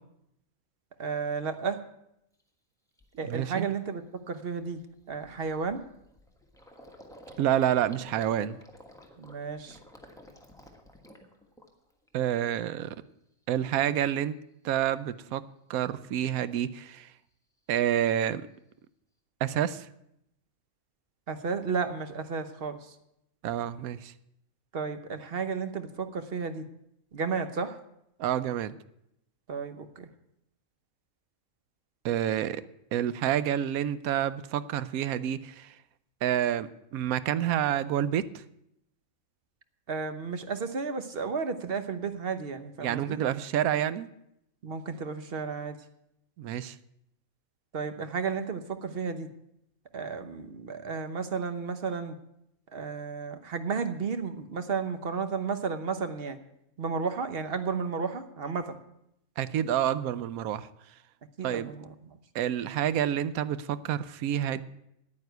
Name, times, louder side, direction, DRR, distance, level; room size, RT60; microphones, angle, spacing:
voice 1, 1.0-1.8 3.2-4.0 4.3-4.8 5.1-5.8 9.2-9.8 21.3-22.9 24.7-26.6 27.1-27.8 29.5-30.1 39.9-43.2 44.6-45.8 47.7-49.3 49.9-52.2 52.7-56.4 56.8-58.8 61.4-61.9, right 5 dB, 50° right, 10 dB, 1.0 m, -33 dB
Gurgling, 2.4-2.5 3.0-3.2 3.6-3.8 4.0-12.1 12.4-13.1, equal, 5° left, 1.3 m, -52 dB
voice 2, 3.2-3.7 7.4-8.6 12.1-12.9 13.5-14.3 14.6-15.4 15.7-17.1 17.7-18.4 19.4-19.9 23.4-24.1 28.2-28.8 32.0-32.6 32.9-35.7 36.2-38.2 42.8-44.1 46.4-46.8 59.4-60.7 61.4-61.7 62.3-64.6, right 10 dB, 85° right, 15 dB, 1.1 m, -28 dB
9.7 x 9.4 x 7.9 m, 0.80 s
omnidirectional pair, 1.5 m